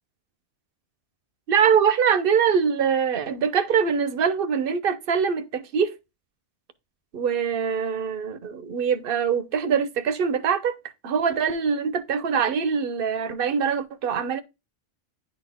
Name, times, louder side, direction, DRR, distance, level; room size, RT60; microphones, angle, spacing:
voice 1, 1.5-5.9 7.1-10.8 11.0-14.4, right 7 dB, 65° right, 0.9 m, -23 dB
10.0 x 4.2 x 3.5 m
omnidirectional pair, 1.1 m